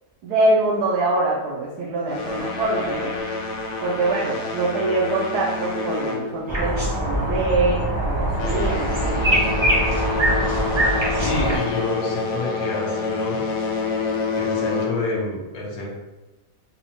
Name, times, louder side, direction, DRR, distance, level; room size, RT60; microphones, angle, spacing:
voice 1, 0.2-3.1 3.8-9.6, right 2 dB, 75° right, -5 dB, 1.2 m, -24 dB
sound 1, 2.1-7.0 7.3-7.6 8.2-15.2, left 4 dB, 90° left, 1.2 m, -28 dB
sound 2, 6.5-11.6, right 1 dB, 25° right, 0.6 m, -22 dB
voice 2, 11.1-13.4 14.4-15.9, left 3 dB, 65° left, -4 dB, 1.3 m, -28 dB
4.1 x 2.3 x 2.9 m, 1.1 s
omnidirectional pair, 1.7 m